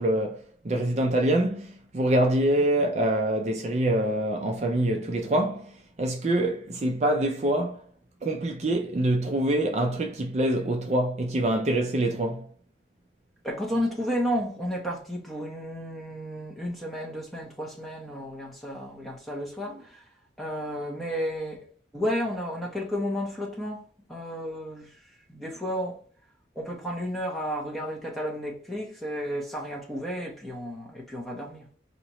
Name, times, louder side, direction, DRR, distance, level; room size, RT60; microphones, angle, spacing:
voice 1, 0.0-7.8 8.2-12.4, right 1 dB, 40° right, 0.4 m, -25 dB
voice 2, 13.4-20.0 20.4-21.6 21.9-23.8 24.1-25.0 25.3-26.0 26.5-31.6, equal, ahead, 1.0 m, -32 dB
5.0 x 2.8 x 3.0 m
head